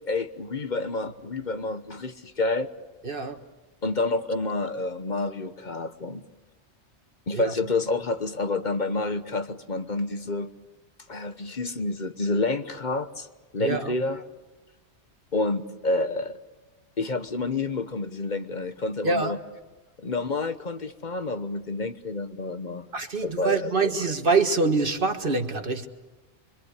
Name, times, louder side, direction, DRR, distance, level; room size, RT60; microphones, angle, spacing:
voice 1, 0.1-2.7 3.8-6.3 7.3-10.5 11.1-13.3 13.5-14.2 15.3-16.4 17.0-19.4 20.0-22.9 23.2-23.9, left 3 dB, 40° left, 1.2 m, -29 dB
voice 2, 3.0-3.4 7.3-7.5 13.6-14.0 19.0-19.4 22.9-25.9, right 4 dB, 50° right, 1.8 m, -25 dB
25.5 x 25.0 x 8.3 m
omnidirectional pair, 1.2 m